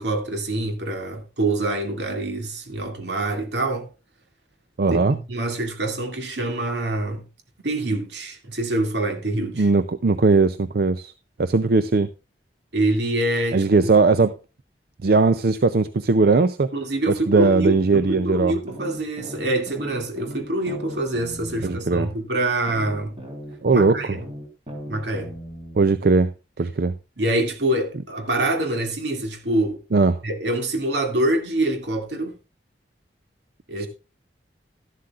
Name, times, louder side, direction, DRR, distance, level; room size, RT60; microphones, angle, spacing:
voice 1, 0.0-3.9 4.9-7.2 7.6-9.7 12.7-13.9 16.7-23.2 23.7-24.2 24.9-25.3 27.2-29.8 30.2-32.3 33.7-33.9, right 1 dB, 75° right, 2.4 m, -25 dB
voice 2, 4.8-5.2 9.6-11.1 11.4-12.1 13.5-14.4 15.0-16.7 17.3-18.6 21.6-22.1 23.6-24.2 25.8-26.3 26.6-26.9 29.9-30.2 33.8-33.9, right 3 dB, 60° right, 0.5 m, -19 dB
sound 1, 18.7-22.1 22.7-25.9, equal, 30° right, 3.5 m, -38 dB
13.0 x 11.5 x 2.4 m
head